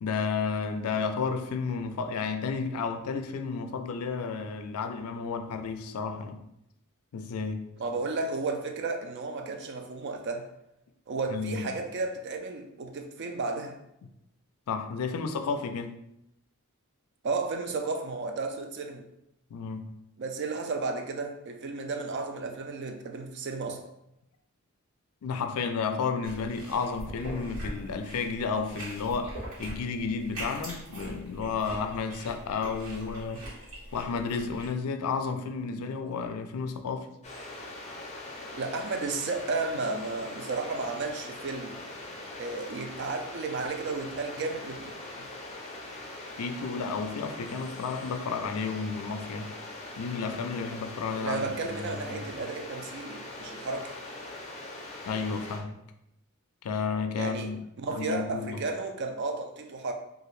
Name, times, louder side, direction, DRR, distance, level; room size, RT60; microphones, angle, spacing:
voice 1, 0.0-6.4 7.1-7.6 11.3-11.7 14.7-16.0 19.5-19.9 25.2-33.4 33.9-37.1 46.4-49.5 50.0-52.2 55.1-55.7 56.6-57.6 57.9-58.6, left 5 dB, 85° left, 0.4 m, -32 dB
voice 2, 7.8-10.5 11.1-13.7 17.2-19.0 20.2-23.8 38.5-41.7 42.4-44.9 45.2-45.3 51.2-53.9 57.2-57.5 57.8-59.9, right 3 dB, 50° right, 0.4 m, -33 dB
sound 1, 26.2-34.7, right 1 dB, 80° right, 1.3 m, -42 dB
sound 2, 37.2-55.6, left 2 dB, 30° left, 0.6 m, -42 dB
2.8 x 2.5 x 3.1 m
head